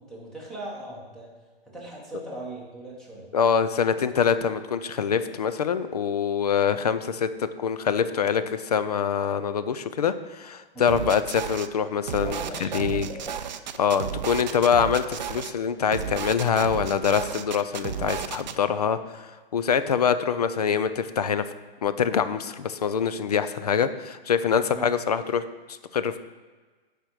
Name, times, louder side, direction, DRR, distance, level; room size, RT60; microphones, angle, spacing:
voice 1, 0.0-1.3 1.6-3.3 10.7-11.0 12.2-13.5 24.7-24.9, right 1 dB, ahead, -5 dB, 0.8 m, -39 dB
voice 2, 3.3-13.1 13.8-21.4 21.8-25.4 25.7-26.2, left 7 dB, 40° left, 12 dB, 0.4 m, -25 dB
sound 1, 10.9-11.7 12.1-15.5 15.9-18.6, right 8 dB, 45° right, 0.4 m, -33 dB
9.0 x 5.0 x 6.0 m, 1.3 s
hypercardioid pair, 170°, 31 cm